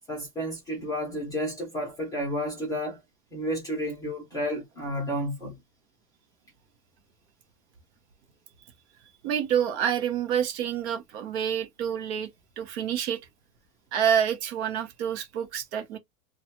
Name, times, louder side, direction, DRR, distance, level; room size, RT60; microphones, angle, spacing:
voice 1, 0.1-3.0 3.3-5.6, equal, 10° left, 0.7 m, -31 dB
voice 2, 9.2-12.3 12.6-13.2 13.9-16.0, right 9 dB, 45° right, 0.8 m, -27 dB
2.6 x 2.3 x 2.8 m
supercardioid pair, 180°, 46 cm